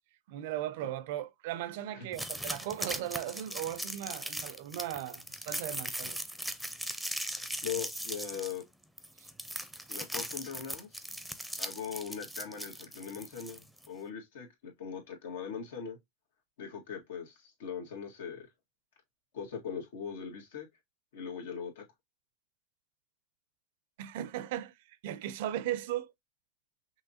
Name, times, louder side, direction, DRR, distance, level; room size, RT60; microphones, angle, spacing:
voice 1, 0.3-6.2 24.0-26.1, right 12 dB, 70° right, 0.5 m, -37 dB
sound 1, 2.1-13.9, equal, ahead, 0.6 m, -39 dB
voice 2, 7.6-8.6 9.9-10.9 11.6-16.0 16.6-18.5 19.3-20.7 21.1-21.8, left 7 dB, 80° left, 1.7 m, -40 dB
5.6 x 3.0 x 2.7 m
supercardioid pair, 115°, 0 cm